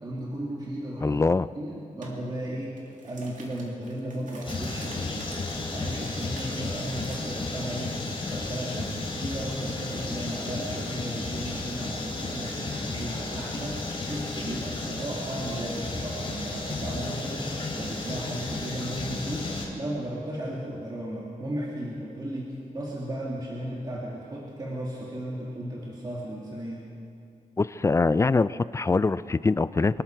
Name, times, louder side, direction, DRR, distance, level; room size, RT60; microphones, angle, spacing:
voice 1, 0.0-1.2 1.5-5.4 5.7-7.9 8.3-13.8 14.1-26.8, right 1 dB, 30° right, -5 dB, 2.3 m, -35 dB
voice 2, 1.0-1.5 27.6-30.0, left 3 dB, 20° left, 16 dB, 0.3 m, -23 dB
sound 1, 2.0-2.2 2.6-7.2, right 3 dB, 65° right, 2.3 m, -48 dB
sound 2, 4.4-19.7, left 2 dB, 40° left, 3.2 m, -33 dB
25.0 x 12.5 x 4.6 m, 2.5 s
wide cardioid pair, 130°, 14 cm